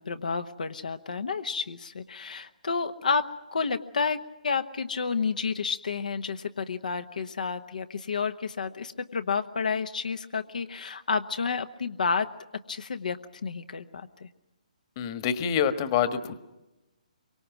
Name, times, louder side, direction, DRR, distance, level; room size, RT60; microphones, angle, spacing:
voice 1, 0.0-14.3, left 5 dB, 75° left, 8 dB, 1.1 m, -30 dB
voice 2, 15.0-16.4, left 8 dB, 35° left, 10 dB, 1.4 m, -26 dB
26.0 x 24.0 x 6.1 m, 1.0 s
hypercardioid pair, 145°, 4 cm